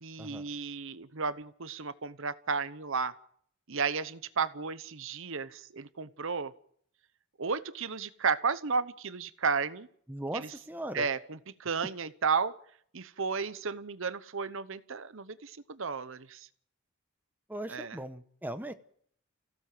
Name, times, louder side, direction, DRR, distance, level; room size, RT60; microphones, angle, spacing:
voice 1, 0.0-3.1 3.7-6.5 7.4-9.9 10.3-10.5 10.9-12.5 12.9-16.5 17.7-18.0, right 5 dB, 65° right, 14 dB, 0.9 m, -33 dB
voice 2, 10.1-11.1 17.5-18.7, right 1 dB, 10° right, 9 dB, 1.0 m, -39 dB
28.0 x 16.0 x 7.6 m, 0.66 s
head